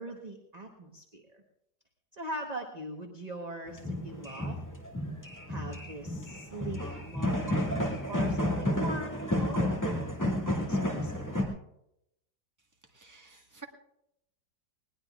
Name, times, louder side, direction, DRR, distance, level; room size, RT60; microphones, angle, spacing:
voice 1, 0.0-1.4 2.1-4.6 5.5-11.3, right 1 dB, 25° right, 2 dB, 1.1 m, -42 dB
sound 1, 3.7-11.4, left 1 dB, 10° left, 2.0 m, -31 dB
voice 2, 12.9-13.6, right 5 dB, 10° right, 1 dB, 1.4 m, -50 dB
20.5 x 19.0 x 2.4 m, 0.81 s
omnidirectional pair, 1.9 m